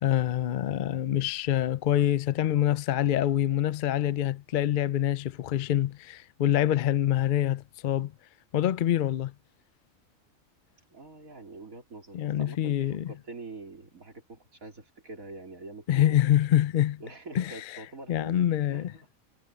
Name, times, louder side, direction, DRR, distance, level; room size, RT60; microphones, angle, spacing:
voice 1, 0.0-8.1 8.5-9.3 12.1-13.1 15.9-17.0 17.3-17.8 18.1-18.9, left 11 dB, 60° left, 0.5 m, -26 dB
voice 2, 10.9-16.3 17.0-19.1, right 3 dB, 80° right, 4.1 m, -45 dB
omnidirectional pair, 1.4 m